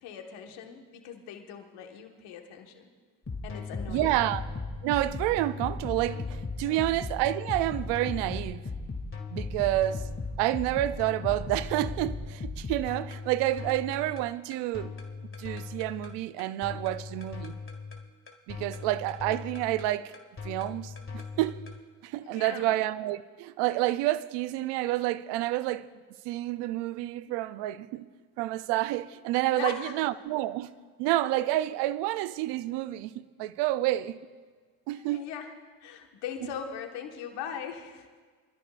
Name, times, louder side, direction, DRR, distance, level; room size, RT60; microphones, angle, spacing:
voice 1, 0.0-2.9 3.4-4.3 6.6-6.9 22.2-22.8 29.5-30.0 34.9-35.5 35.8-38.1, left 8 dB, 85° left, 1.6 m, -40 dB
sound 1, 3.3-21.8, left 4 dB, 30° left, 2.3 m, -37 dB
voice 2, 3.9-4.4 4.8-8.6 9.3-10.1 10.4-14.9 15.4-17.6 18.5-20.1 20.4-21.6 22.0-25.9 26.2-28.1 28.4-30.7 31.0-34.2 34.9-35.2, right 15 dB, 85° right, 0.6 m, -29 dB
25.5 x 13.0 x 2.5 m
supercardioid pair, 55°, 40 cm